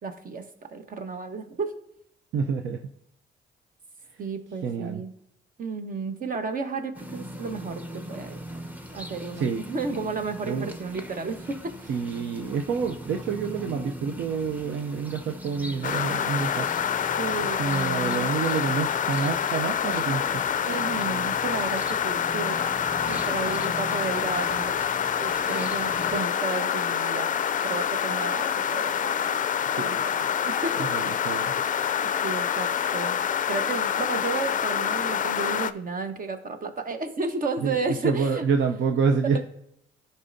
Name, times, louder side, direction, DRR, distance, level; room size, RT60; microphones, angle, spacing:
voice 1, 0.0-1.7 4.2-5.1 5.6-7.8 8.1-8.4 8.9-11.9 17.2-18.3 20.6-22.6 23.0-24.7 25.2-27.3 27.6-29.4 29.7-30.2 30.4-31.3 32.0-38.4 39.3-39.4, right 4 dB, 45° right, 7 dB, 1.2 m, -33 dB
voice 2, 2.3-2.8 4.6-5.0 9.4-9.6 10.4-10.7 11.9-16.7 17.6-20.2 29.6-30.0 30.8-31.5 37.6-39.4, right 5 dB, 70° right, 5 dB, 0.6 m, -27 dB
sound 1, 6.9-26.2, equal, 10° right, 0.9 m, -40 dB
sound 2, 15.8-35.7, left 8 dB, 40° left, 0.4 m, -27 dB
14.5 x 5.5 x 2.7 m, 0.78 s
cardioid pair, 90°, 20 cm